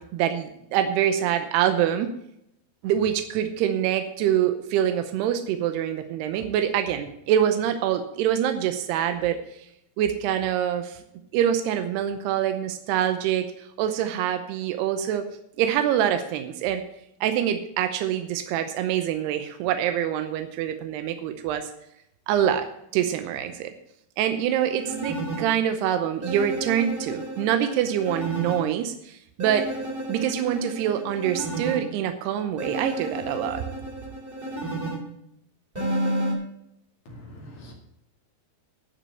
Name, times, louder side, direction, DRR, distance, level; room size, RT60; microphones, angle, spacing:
voice 1, 0.0-2.1 2.8-9.4 10.0-11.0 11.3-13.5 13.8-15.3 15.6-16.8 17.2-21.7 22.3-22.7 22.9-23.7 24.2-29.7 30.1-33.6, right 10 dB, 85° right, 8 dB, 2.9 m, -25 dB
sound 1, 24.5-25.4 26.2-28.6 29.4-31.8 32.6-35.0 35.7-36.3, right 1 dB, 15° right, 2.2 m, -32 dB
voice 2, 37.1-37.7, equal, 50° left, -1 dB, 3.3 m, -43 dB
11.5 x 6.1 x 8.2 m, 0.77 s
omnidirectional pair, 4.6 m